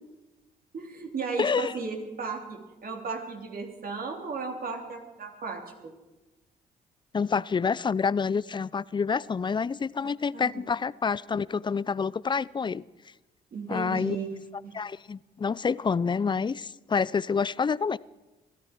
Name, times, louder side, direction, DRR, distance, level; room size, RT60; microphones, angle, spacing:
voice 1, 0.7-5.9 10.3-10.6 13.5-14.3 14.6-14.7, right 4 dB, 55° right, 2 dB, 3.4 m, -35 dB
voice 2, 1.4-1.7 7.1-12.8 13.7-14.2 14.7-18.0, left 5 dB, 25° left, 21 dB, 0.5 m, -28 dB
22.0 x 14.0 x 4.6 m, 1.1 s
hypercardioid pair, 55°, 18 cm